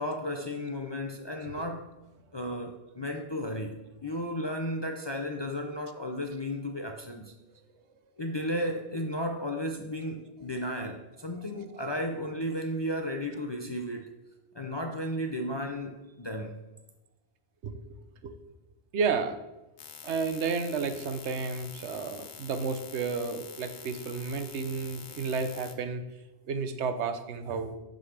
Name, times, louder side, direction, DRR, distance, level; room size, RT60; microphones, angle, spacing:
voice 1, 0.0-1.9 2.3-7.3 8.2-14.1 14.5-16.6, equal, 35° left, 3 dB, 0.4 m, -34 dB
voice 2, 18.9-19.4 20.0-26.0 26.5-27.8, right 5 dB, 80° right, 9 dB, 1.0 m, -31 dB
sound 1, 19.8-25.7, left 8 dB, 80° left, 1.0 m, -46 dB
8.1 x 3.9 x 5.7 m, 1.1 s
omnidirectional pair, 1.1 m